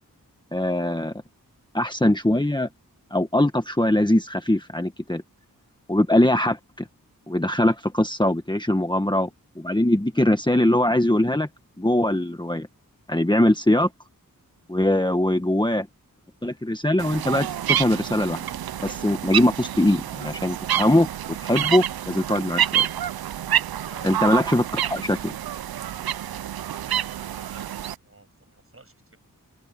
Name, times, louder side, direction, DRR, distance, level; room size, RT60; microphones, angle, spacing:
voice 1, 0.5-1.1 1.7-2.7 3.1-5.2 5.9-6.9 7.3-9.3 9.5-11.5 11.8-12.7 13.1-13.9 14.7-15.9 16.4-18.4 18.8-21.1 21.4-22.8 24.0-25.3, left 1 dB, 10° left, 1.5 m, -21 dB
sound 1, 17.0-27.9, right 11 dB, 85° right, 0.5 m, -28 dB
voice 2, 26.8-27.6 28.0-29.2, right 2 dB, 40° right, 7.7 m, -50 dB
open air
wide cardioid pair, 50°, 36 cm